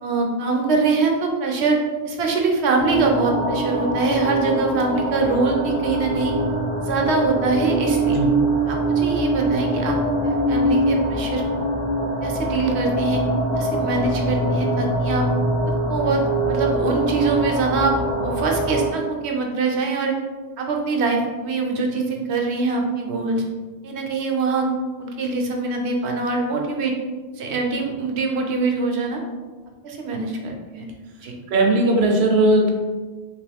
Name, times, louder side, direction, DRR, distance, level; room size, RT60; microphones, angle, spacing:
voice 1, 0.0-6.3 6.8-8.2 8.7-10.0 10.2-11.7 12.2-13.2 13.5-15.2 15.6-20.2 20.6-23.4 23.8-24.7 25.0-26.9 27.4-29.2 29.8-30.8 31.2-31.3, right 3 dB, 80° right, 1 dB, 0.9 m, -23 dB
sound 1, 2.8-18.9, right 1 dB, 60° left, 1.0 m, -23 dB
voice 2, 31.5-32.7, right 2 dB, 55° right, 1 dB, 0.7 m, -17 dB
3.0 x 2.9 x 3.3 m, 1.3 s
omnidirectional pair, 1.1 m